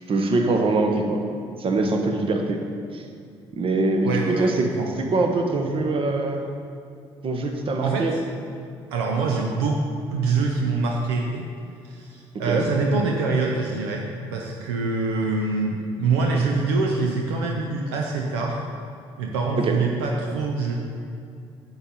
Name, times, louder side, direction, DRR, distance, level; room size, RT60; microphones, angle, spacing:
voice 1, 0.1-1.2 1.6-2.6 2.9-3.0 3.6-4.7 5.0-6.4 7.2-8.1 12.5-12.6 19.6-19.8, right 2 dB, 40° right, 3 dB, 1.1 m, -23 dB
voice 2, 4.0-4.9 7.8-8.2 8.9-9.8 10.1-11.5 11.8-18.6 19.2-20.7, right 3 dB, 70° right, 0 dB, 0.7 m, -25 dB
9.5 x 7.3 x 4.0 m, 2.5 s
figure-of-eight pair, 45°, 14 cm